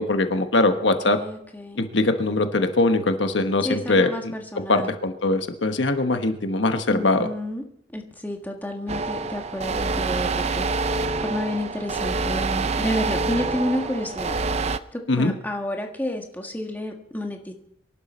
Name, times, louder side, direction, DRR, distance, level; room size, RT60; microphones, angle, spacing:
voice 1, 0.0-1.2 1.8-4.3 4.7-7.3 15.1-15.3, left 2 dB, 80° left, 7 dB, 1.2 m, -22 dB
voice 2, 1.0-1.8 3.6-4.9 6.9-7.6 7.9-11.0 11.2-17.5, equal, 10° left, 2 dB, 1.6 m, -30 dB
sound 1, 8.9-14.8, right 3 dB, 35° right, 0.5 m, -26 dB
24.0 x 11.5 x 4.3 m, 0.73 s
head